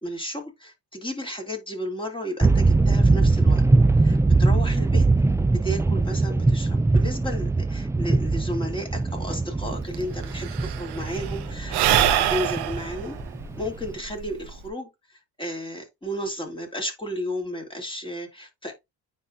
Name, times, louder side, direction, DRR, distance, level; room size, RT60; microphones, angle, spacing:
voice 1, 0.0-3.6 4.0-5.1 5.6-13.2 13.6-18.7, equal, 15° left, 3.0 m, -33 dB
sound 1, 2.4-13.9, right 3 dB, 10° right, 0.3 m, -22 dB
Sigh / Breathing, 9.7-9.8 9.9-14.7, right 11 dB, 85° right, 1.0 m, -25 dB
9.6 x 3.7 x 2.6 m
cardioid pair, 80°, 38 cm